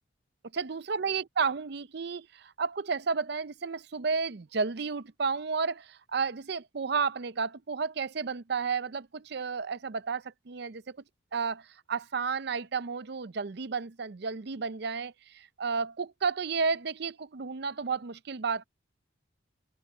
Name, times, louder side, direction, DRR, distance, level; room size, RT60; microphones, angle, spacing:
voice 1, 0.5-11.0 11.3-18.6, right 5 dB, 55° right, 0.6 m, -32 dB
head